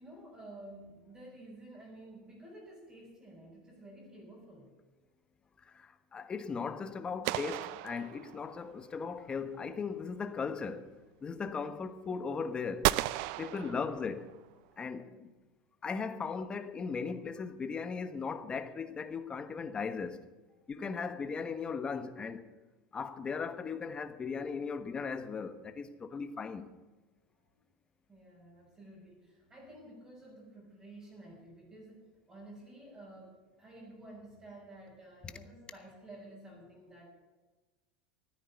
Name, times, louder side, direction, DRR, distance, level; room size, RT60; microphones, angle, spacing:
voice 1, 0.0-4.7 13.5-13.9 28.1-37.1, right 1 dB, 20° right, 6.0 m, -52 dB
voice 2, 5.6-10.9 11.2-12.9 13.4-14.3 14.8-15.3 15.8-20.2 20.7-22.5 22.9-26.7, left 5 dB, 20° left, 1.2 m, -37 dB
sound 1, 7.2-8.7 12.8-14.4, right 18 dB, 60° right, 0.5 m, -34 dB
14.0 x 9.5 x 8.4 m
supercardioid pair, 135°, 5 cm